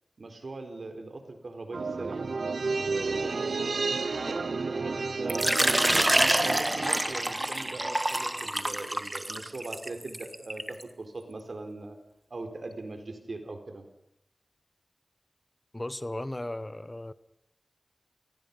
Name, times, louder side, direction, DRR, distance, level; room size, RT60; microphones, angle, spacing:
voice 1, 0.2-2.3 2.9-12.0 12.3-13.8, right 2 dB, 70° right, 6 dB, 4.4 m, -41 dB
sound 1, 1.7-8.3 8.6-8.7, right 4 dB, 90° right, 0.8 m, -32 dB
Water / Liquid, 5.3-10.8, right 1 dB, 20° right, 1.6 m, -27 dB
voice 2, 15.7-17.1, left 1 dB, 25° left, 15 dB, 0.9 m, -36 dB
28.0 x 19.5 x 5.5 m, 0.78 s
wide cardioid pair, 65°, 0 cm